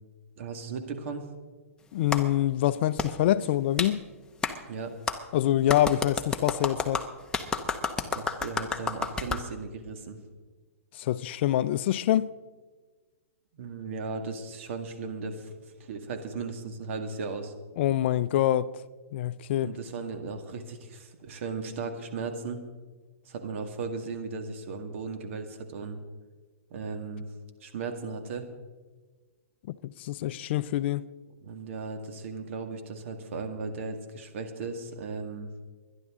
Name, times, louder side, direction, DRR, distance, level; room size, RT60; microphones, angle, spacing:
voice 1, 0.4-1.2 4.7-5.0 8.1-10.2 13.5-15.5 15.8-17.5 19.6-22.6 23.3-26.0 26.7-27.3 27.6-28.5 31.4-35.5, right 4 dB, 55° right, 2.0 m, -36 dB
voice 2, 1.9-4.0 5.3-7.0 11.0-12.3 17.8-18.8 19.1-19.7 29.7-31.0, left 13 dB, 50° left, 0.5 m, -26 dB
Clapping, 2.1-2.2 3.0-3.1 3.8-3.9 4.4-4.5 5.1-5.2 5.7-9.4, left 4 dB, 10° left, 0.9 m, -30 dB
23.5 x 11.0 x 3.8 m
hypercardioid pair, 140°, 8 cm